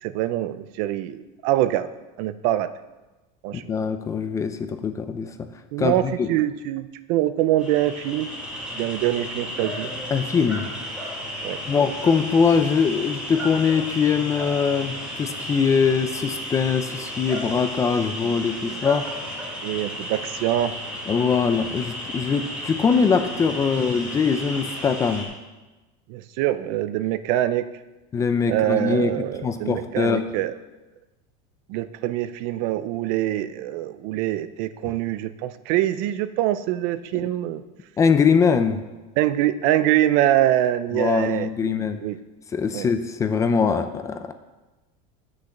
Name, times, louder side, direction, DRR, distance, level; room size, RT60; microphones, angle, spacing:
voice 1, 0.0-1.9 2.2-2.7 3.4-3.6 5.7-8.3 8.8-9.9 11.4-11.6 18.2-18.3 18.6-18.8 19.6-20.7 26.1-27.7 28.5-30.5 31.7-37.6 39.2-42.2 42.7-42.9, right 13 dB, 50° right, 13 dB, 0.6 m, -24 dB
voice 2, 3.5-5.3 5.8-6.3 10.1-10.7 11.7-19.1 21.1-25.3 28.1-29.1 29.4-30.2 38.0-38.8 40.9-42.0 42.5-44.3, left 6 dB, 15° left, 9 dB, 0.5 m, -22 dB
sound 1, 7.6-25.2, equal, 5° right, 2.3 m, -33 dB
10.0 x 6.6 x 7.2 m, 1.1 s
cardioid pair, 165°, 18 cm